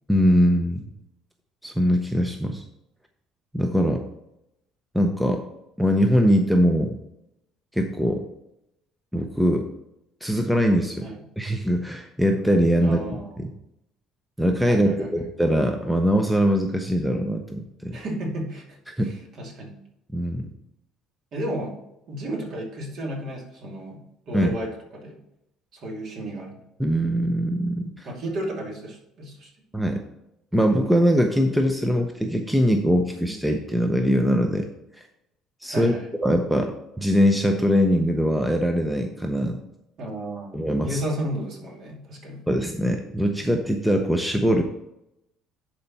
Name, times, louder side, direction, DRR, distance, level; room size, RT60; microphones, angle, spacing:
voice 1, 0.1-0.8 1.6-2.6 3.5-4.0 4.9-5.4 5.8-7.0 7.7-8.2 9.1-9.7 10.2-11.1 11.4-13.0 13.4-13.5 14.4-18.0 19.0-19.1 20.1-20.5 24.3-24.5 26.8-28.1 29.7-30.0 30.5-34.7 35.6-35.9 36.2-36.7 37.0-39.6 40.5-41.0 42.5-44.6, equal, ahead, 4 dB, 0.7 m, -22 dB
voice 2, 12.8-13.4 14.7-15.3 17.9-19.8 21.3-21.8 22.1-25.2 25.7-26.6 28.1-29.5 35.7-36.1 40.0-42.4, right 1 dB, 50° right, 0 dB, 2.5 m, -33 dB
11.0 x 4.5 x 4.2 m, 0.83 s
cardioid pair, 140°, 0 cm